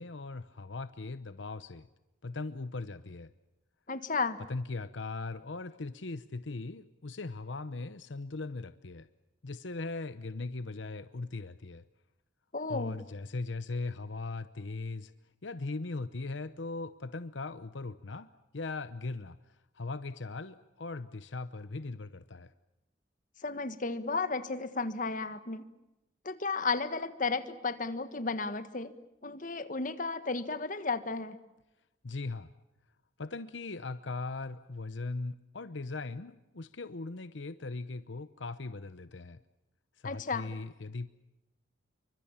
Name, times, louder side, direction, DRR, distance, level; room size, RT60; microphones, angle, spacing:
voice 1, 0.0-1.9 2.2-3.3 4.5-9.1 9.4-11.8 12.7-15.1 15.4-19.4 19.7-22.5 32.0-32.5 33.2-39.4 40.0-41.1, left 3 dB, 80° left, 13 dB, 0.9 m, -39 dB
voice 2, 3.9-4.4 12.5-13.0 23.4-25.6 26.2-28.9 29.2-31.4 40.0-40.5, left 4 dB, 45° left, 11 dB, 1.6 m, -33 dB
28.0 x 24.5 x 7.3 m, 0.95 s
head